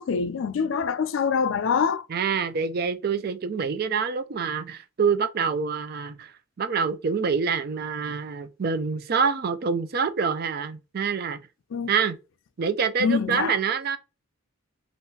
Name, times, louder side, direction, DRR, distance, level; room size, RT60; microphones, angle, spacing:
voice 1, 0.0-2.1 11.7-11.9 13.0-13.5, left 6 dB, 70° left, 0.4 m, -25 dB
voice 2, 2.1-6.3 6.6-11.4 11.9-12.2 12.6-14.0, right 5 dB, 50° right, 0.4 m, -26 dB
3.7 x 2.5 x 2.8 m
head